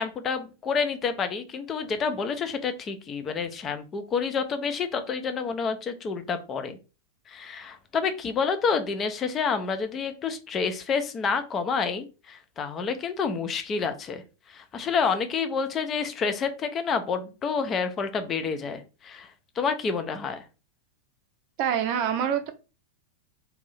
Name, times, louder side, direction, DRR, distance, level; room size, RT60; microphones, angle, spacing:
voice 1, 0.0-6.8 7.3-14.2 14.5-19.3 19.6-20.4, left 5 dB, 25° left, 9 dB, 0.6 m, -28 dB
voice 2, 21.6-22.5, right 9 dB, 40° right, 6 dB, 0.7 m, -25 dB
4.1 x 2.7 x 4.1 m, 0.31 s
figure-of-eight pair, 90°, 0 cm